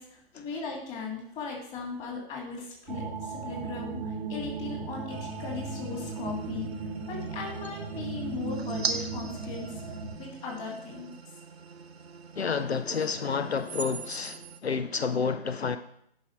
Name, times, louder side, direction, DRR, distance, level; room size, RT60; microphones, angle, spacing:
voice 1, 0.0-6.7 7.1-9.8 10.2-11.1, left 4 dB, 25° left, 2.6 m, -38 dB
sound 1, 2.9-10.2, right 4 dB, 60° right, 1.0 m, -36 dB
sound 2, 5.1-14.6, right 5 dB, 80° right, 0.9 m, -41 dB
voice 2, 12.4-15.8, left 5 dB, 90° left, 0.6 m, -30 dB
10.0 x 5.3 x 4.6 m
figure-of-eight pair, 125°, 31 cm